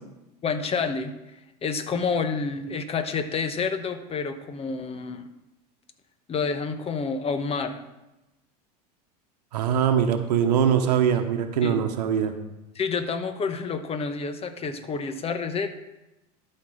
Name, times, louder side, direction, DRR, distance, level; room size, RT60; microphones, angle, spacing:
voice 1, 0.4-1.1 1.6-5.2 6.3-7.8 11.6-11.8 12.7-15.7, left 5 dB, 30° left, 9 dB, 1.1 m, -28 dB
voice 2, 9.5-12.3, right 8 dB, 80° right, 7 dB, 1.0 m, -22 dB
12.0 x 4.6 x 6.4 m, 0.98 s
hypercardioid pair, 90°, 21 cm